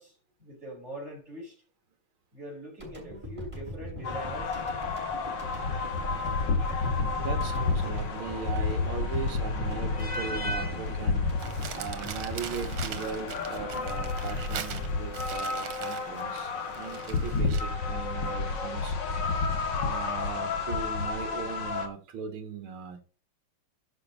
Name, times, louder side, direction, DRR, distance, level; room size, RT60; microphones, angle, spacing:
voice 1, 0.0-1.5 2.3-4.6, equal, 30° right, 5.1 m, -43 dB
sound 1, 2.8-15.0, equal, 15° right, 5.3 m, -41 dB
sound 2, 4.0-21.9, left 4 dB, 55° left, 2.1 m, -31 dB
voice 2, 7.1-11.2 11.8-19.0 19.8-23.0, right 6 dB, 70° right, 2.3 m, -38 dB
Crumpling crinkling, 11.4-17.8, right 9 dB, 90° right, 2.0 m, -41 dB
11.5 x 5.7 x 5.4 m
omnidirectional pair, 2.4 m